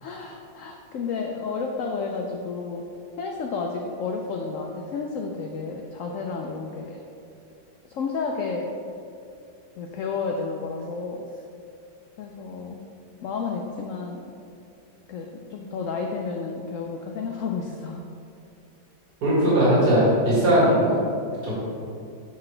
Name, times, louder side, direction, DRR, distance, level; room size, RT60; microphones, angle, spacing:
voice 1, 0.0-2.8 3.2-7.0 7.9-8.7 9.7-11.2 12.2-12.8 13.2-14.3 15.1-18.0 20.9-21.1, left 4 dB, 80° left, 1 dB, 0.7 m, -31 dB
voice 2, 19.2-20.9 21.4-21.6, right 1 dB, 65° right, -8 dB, 2.4 m, -19 dB
6.9 x 5.9 x 3.2 m, 2.5 s
omnidirectional pair, 1.9 m